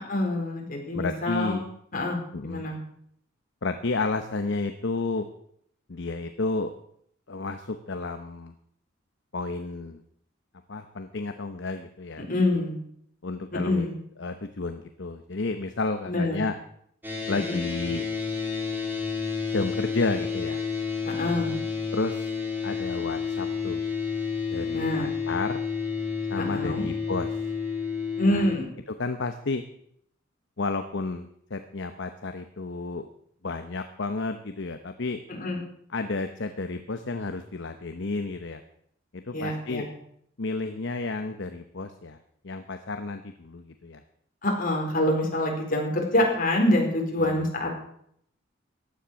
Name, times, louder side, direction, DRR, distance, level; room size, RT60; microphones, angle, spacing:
voice 1, 0.1-1.6 1.9-2.2 2.4-2.8 12.3-12.7 13.5-13.9 16.1-16.4 17.4-17.6 21.2-21.5 24.7-25.1 26.4-26.8 28.2-28.7 35.3-35.6 39.3-39.8 44.4-47.8, left 1 dB, 45° left, 0 dB, 4.2 m, -26 dB
voice 2, 0.9-1.7 2.3-2.7 3.6-5.3 5.9-6.7 7.3-8.5 9.3-10.0 10.7-12.3 13.2-13.9 14.2-16.6 17.3-18.1 19.5-20.6 21.9-22.3 22.6-23.8 24.5-25.6 26.3-27.3 28.3-28.5 28.9-29.6 30.6-33.1 33.4-35.2 35.9-38.6 39.1-39.9 40.4-42.2 42.4-44.0 47.2-47.5, left 3 dB, 60° left, 8 dB, 0.9 m, -31 dB
sound 1, 17.0-28.6, left 5 dB, 10° right, 2.9 m, -30 dB
15.5 x 10.5 x 6.3 m, 0.69 s
head